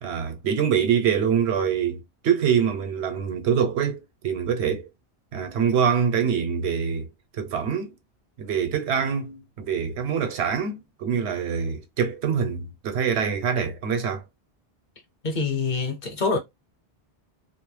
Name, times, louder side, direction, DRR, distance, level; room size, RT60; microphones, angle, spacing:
voice 1, 0.0-4.9 5.3-7.1 7.4-7.9 8.4-14.2, right 7 dB, 90° right, 0.9 m, -25 dB
voice 2, 15.2-16.4, left 4 dB, 50° left, 0.8 m, -25 dB
2.3 x 2.0 x 3.1 m
omnidirectional pair, 1.1 m